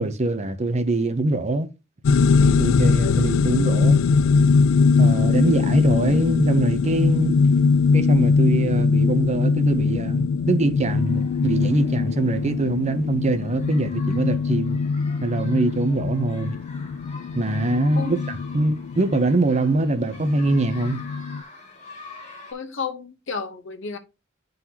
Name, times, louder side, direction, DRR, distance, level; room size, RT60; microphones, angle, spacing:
voice 1, 0.0-1.7 2.4-4.0 5.0-7.4 7.9-14.8 15.2-16.6 17.3-21.0, right 2 dB, 35° right, 0.7 m, -23 dB
sound 1, 2.0-21.4, left 4 dB, 90° left, 0.4 m, -21 dB
sound 2, 10.9-22.5, left 3 dB, 35° left, 3.2 m, -46 dB
voice 2, 22.5-24.0, left 5 dB, 70° left, 0.9 m, -32 dB
11.0 x 3.9 x 2.9 m
head